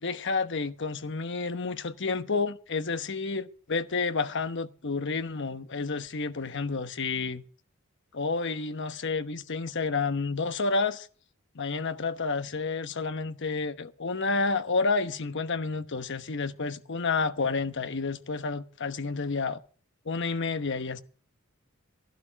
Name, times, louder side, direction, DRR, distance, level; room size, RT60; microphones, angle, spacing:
voice 1, 0.0-7.5 8.1-11.1 11.5-19.6 20.0-21.0, left 4 dB, 60° left, 1.1 m, -30 dB
14.0 x 11.5 x 4.8 m
head